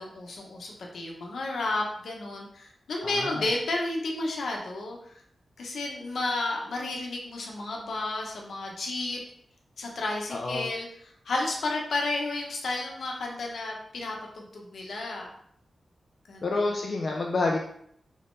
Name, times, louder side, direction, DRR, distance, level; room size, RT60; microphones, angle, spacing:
voice 1, 0.0-5.0 5.6-9.2 9.8-10.9 11.2-15.3 16.3-16.5, left 2 dB, 75° left, 0 dB, 0.9 m, -32 dB
voice 2, 3.0-3.5 10.3-10.7 16.4-17.6, left 3 dB, 50° left, 0 dB, 0.4 m, -28 dB
3.9 x 3.7 x 2.6 m, 0.67 s
wide cardioid pair, 170°, 0 cm